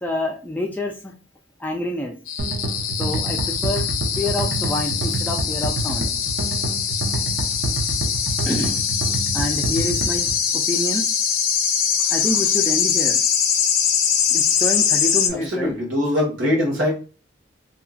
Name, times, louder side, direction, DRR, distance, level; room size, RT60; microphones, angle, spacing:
voice 1, 0.0-1.1 1.6-2.1 3.0-3.9 4.2-6.1 8.4-8.7 9.3-10.3 10.5-11.0 12.1-13.2 13.8-13.9 14.3-15.7, left 1 dB, 10° left, 1 dB, 0.3 m, -27 dB
sound 1, 2.3-15.3, left 8 dB, 85° left, 0.5 m, -22 dB
sound 2, 2.4-10.3, right 2 dB, 55° right, 0.6 m, -27 dB
voice 2, 15.3-16.9, left 1 dB, 70° right, -3 dB, 1.5 m, -22 dB
2.9 x 2.5 x 2.4 m, 0.34 s
head